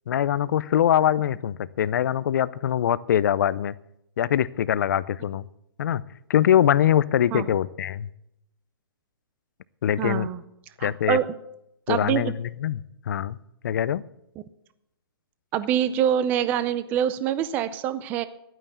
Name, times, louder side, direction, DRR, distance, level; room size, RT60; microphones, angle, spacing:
voice 1, 0.1-3.7 4.2-5.5 5.8-6.0 6.3-8.1 9.8-10.3 10.8-11.2 11.9-13.4 13.6-14.0, left 10 dB, 50° left, 19 dB, 0.5 m, -23 dB
voice 2, 10.0-10.4 10.8-11.3 11.9-12.3 15.5-18.3, right 10 dB, 15° right, 14 dB, 0.4 m, -25 dB
11.5 x 9.1 x 8.1 m, 0.81 s
hypercardioid pair, 165°, 13 cm